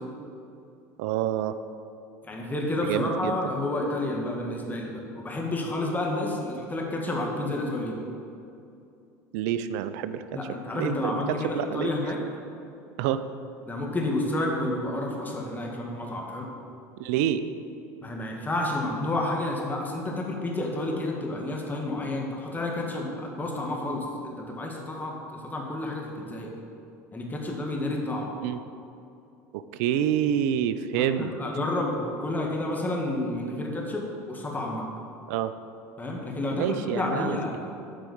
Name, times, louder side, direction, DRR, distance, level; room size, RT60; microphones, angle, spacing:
voice 1, 1.0-1.6 2.8-3.4 9.3-10.2 10.7-11.9 13.0-13.2 17.0-17.5 28.4-28.6 29.5-31.3 35.3-35.5 36.6-37.6, right 10 dB, 70° right, 12 dB, 0.4 m, -27 dB
voice 2, 2.2-8.0 10.3-12.2 13.6-16.5 18.0-24.1 24.4-26.5 27.1-28.3 31.0-34.8 36.0-37.6, left 2 dB, 20° left, 0 dB, 1.7 m, -30 dB
7.8 x 4.8 x 7.0 m, 2.6 s
hypercardioid pair, 85°, 9 cm